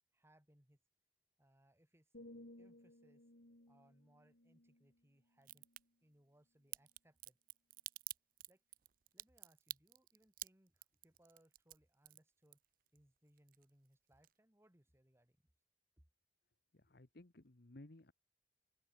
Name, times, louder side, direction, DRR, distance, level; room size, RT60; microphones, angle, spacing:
voice 1, 0.1-0.8 1.4-2.1 2.6-3.2 3.7-5.7 6.0-7.4 8.5-8.6 9.1-12.6 12.9-15.4 16.0-16.1, right 1 dB, 15° right, 2.4 m, -71 dB
sound 1, 2.1-6.0 6.5-6.8, left 1 dB, 90° left, 3.5 m, -60 dB
Crack, 5.4-5.8 6.7-13.0 13.3-13.9 14.2-14.3, right 15 dB, 55° right, 0.6 m, -49 dB
voice 2, 16.7-18.1, left 1 dB, 60° left, 1.3 m, -58 dB
open air
head